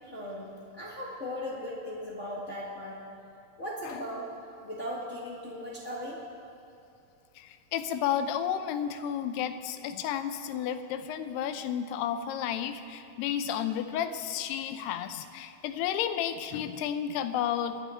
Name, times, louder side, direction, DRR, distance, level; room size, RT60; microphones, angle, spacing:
voice 1, 0.0-3.0 3.6-4.3 4.6-6.2, equal, 45° left, -6 dB, 0.9 m, -38 dB
voice 2, 7.4-17.8, left 9 dB, 85° left, 9 dB, 2.7 m, -32 dB
25.0 x 9.6 x 4.4 m, 2.7 s
omnidirectional pair, 4.6 m